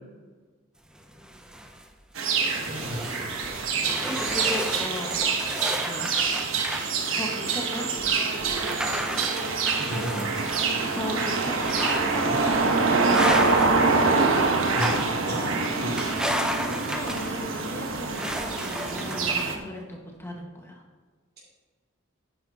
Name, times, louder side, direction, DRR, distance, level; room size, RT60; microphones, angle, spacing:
sound 1, 0.9-1.8 2.2-6.9 7.5-7.6 8.5-11.0 11.6-12.1 12.5-12.7 13.1-13.8 14.6-15.1 16.0-17.3 18.1-19.5, equal, 5° right, 0.7 m, -33 dB
sound 2, 2.2-19.6, right 4 dB, 75° right, 1.2 m, -25 dB
voice 1, 2.6-3.2 9.8-10.1 12.2-12.3 14.7-14.9 15.3-16.2, equal, 55° right, -7 dB, 3.0 m, -34 dB
voice 2, 4.0-5.2 5.8-6.2 7.2-7.9 9.9-10.0 10.9-14.1 16.6-20.8, left 1 dB, 10° left, 0 dB, 1.7 m, -37 dB
10.5 x 9.4 x 3.0 m, 1.4 s
head